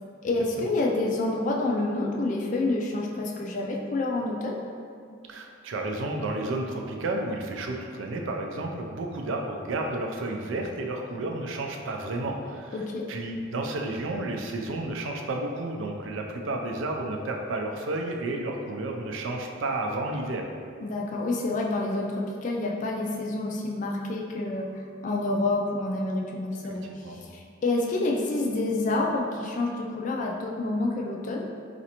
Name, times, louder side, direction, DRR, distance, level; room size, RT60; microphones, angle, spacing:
voice 1, 0.2-4.6 12.7-13.0 20.8-24.7 25.0-26.8 27.3-31.4, left 2 dB, 40° left, -1 dB, 0.3 m, -28 dB
voice 2, 5.3-12.8 13.1-20.5 27.0-27.2, right 2 dB, 75° right, 2 dB, 0.4 m, -31 dB
4.1 x 2.5 x 2.8 m, 2.3 s
head